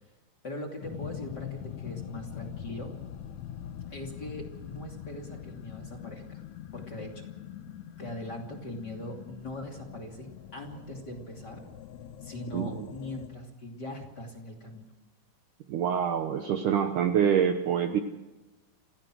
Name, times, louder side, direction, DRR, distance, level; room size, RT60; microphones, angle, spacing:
voice 1, 0.4-2.9 3.9-6.4 6.7-7.2 8.0-11.6 12.2-14.9, left 1 dB, 30° left, 4 dB, 2.8 m, -41 dB
sound 1, 0.8-13.3, left 10 dB, 65° left, 1.9 m, -43 dB
voice 2, 15.7-18.0, right 8 dB, 70° right, 7 dB, 2.2 m, -26 dB
28.0 x 16.5 x 6.3 m, 1.1 s
omnidirectional pair, 4.5 m